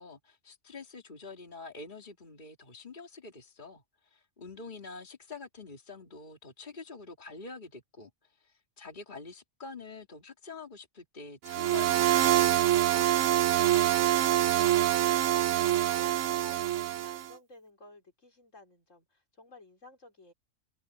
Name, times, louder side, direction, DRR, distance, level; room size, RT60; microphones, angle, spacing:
voice 1, 0.0-8.1 8.4-13.1, left 4 dB, 40° left, 2.5 m, -46 dB
sound 1, 11.5-17.3, right 12 dB, 80° right, 1.0 m, -25 dB
voice 2, 13.9-20.3, left 1 dB, 85° left, 4.8 m, -54 dB
open air
omnidirectional pair, 1.3 m